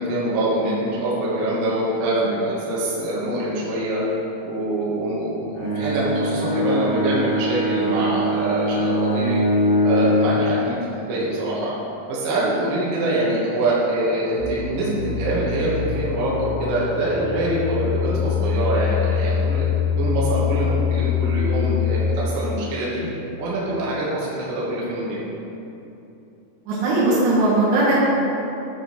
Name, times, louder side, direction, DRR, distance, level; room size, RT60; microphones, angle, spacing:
voice 1, 0.0-4.0 4.4-9.4 9.8-11.7 12.1-19.6 20.0-23.1 23.4-25.2, right 1 dB, 65° right, -8 dB, 2.5 m, -24 dB
Bowed string instrument, 5.6-10.5, equal, 80° left, 3.7 m, -22 dB
sound 1, 14.4-22.0, left 8 dB, 60° left, 2.0 m, -24 dB
voice 2, 26.7-28.0, right 2 dB, 80° right, -8 dB, 4.0 m, -18 dB
9.8 x 3.8 x 4.4 m, 2.9 s
omnidirectional pair, 5.5 m